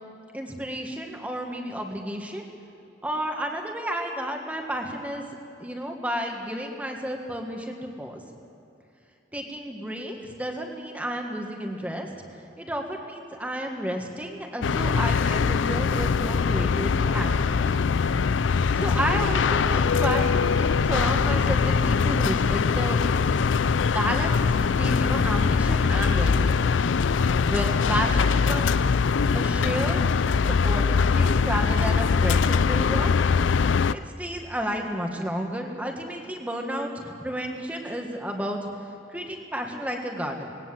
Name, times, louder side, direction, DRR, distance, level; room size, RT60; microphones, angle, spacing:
voice 1, 0.3-2.4 3.0-5.3 5.6-8.2 9.3-12.1 12.6-17.9 18.7-23.0 23.8-26.7 27.5-28.8 29.3-30.0 30.4-33.1 33.6-38.7 39.1-40.6, equal, 10° right, 2 dB, 1.7 m, -31 dB
sound 1, 14.6-33.9, left 5 dB, 90° left, 0.4 m, -22 dB
20.0 x 17.5 x 7.7 m, 2.7 s
head